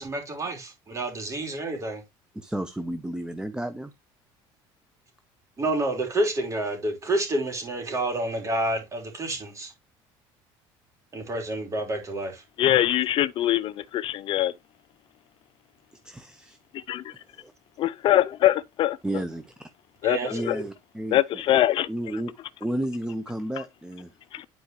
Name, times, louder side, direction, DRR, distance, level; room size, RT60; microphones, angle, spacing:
voice 1, 0.0-2.0 5.6-9.7 11.1-12.4 20.0-20.7, right 2 dB, 30° right, 3.4 m, -29 dB
voice 2, 2.3-3.9 16.0-16.6 17.3-17.5 19.0-19.5 20.3-21.4 21.9-22.3 22.6-24.1, right 1 dB, 5° right, 0.7 m, -32 dB
voice 3, 12.6-14.5 16.9-17.0 17.8-19.0 20.0-20.2 20.5-20.6 21.1-21.9 24.3-24.4, left 13 dB, 55° left, 0.5 m, -22 dB
11.0 x 4.6 x 3.0 m
cardioid pair, 110°, 11 cm